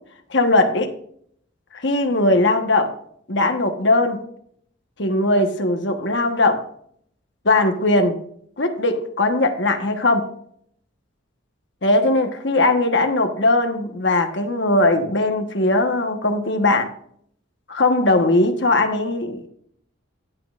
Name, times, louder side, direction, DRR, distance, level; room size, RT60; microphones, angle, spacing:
voice 1, 0.3-0.9 1.7-2.9 3.3-4.2 5.0-6.6 7.4-8.2 8.6-10.3 11.8-16.9 17.7-19.5, left 2 dB, 60° left, 6 dB, 1.2 m, -19 dB
17.5 x 6.2 x 2.5 m, 0.64 s
head